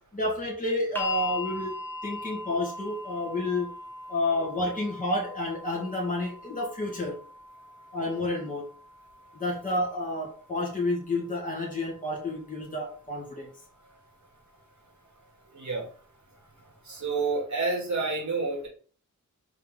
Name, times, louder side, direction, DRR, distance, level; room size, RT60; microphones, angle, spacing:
voice 1, 0.1-1.8 2.0-3.7 4.1-7.2 7.9-8.7 9.3-13.5, left 2 dB, 25° left, -3 dB, 2.0 m, -30 dB
sound 1, 0.9-13.0 14.1-14.2, left 2 dB, 5° left, 1.4 m, -41 dB
voice 2, 15.5-15.8 16.9-18.7, right 3 dB, 55° right, -1 dB, 2.7 m, -29 dB
5.5 x 4.6 x 3.8 m, 0.42 s
wide cardioid pair, 85°, 33 cm